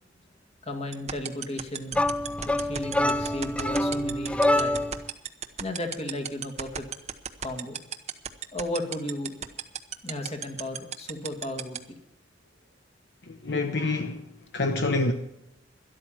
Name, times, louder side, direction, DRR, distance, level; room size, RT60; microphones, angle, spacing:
voice 1, 0.6-2.1 2.4-4.8 5.6-6.9 7.4-7.8 8.5-9.5 10.0-11.8, left 1 dB, 35° left, 2.1 m, -34 dB
sound 1, 0.9-11.8, right 8 dB, 35° right, 0.9 m, -32 dB
sound 2, 1.9-5.1, left 1 dB, 5° left, 0.4 m, -26 dB
voice 2, 13.3-14.3 14.5-15.1, left 2 dB, 65° left, 1.0 m, -27 dB
12.5 x 12.0 x 5.8 m
head